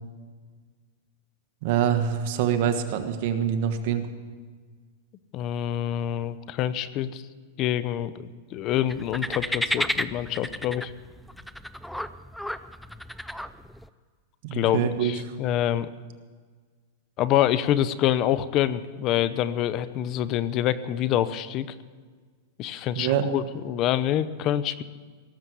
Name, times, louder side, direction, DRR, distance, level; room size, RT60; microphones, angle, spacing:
voice 1, 1.6-4.0 14.4-15.1 22.9-23.3, right 9 dB, 55° right, 7 dB, 1.5 m, -25 dB
voice 2, 5.3-7.2 7.6-10.9 14.5-15.9 17.2-21.7 22.6-24.8, left 11 dB, 40° left, 15 dB, 0.7 m, -26 dB
sound 1, 8.9-13.9, equal, ahead, 0.5 m, -32 dB
18.0 x 7.6 x 8.3 m, 1.5 s
supercardioid pair, 135°, 0 cm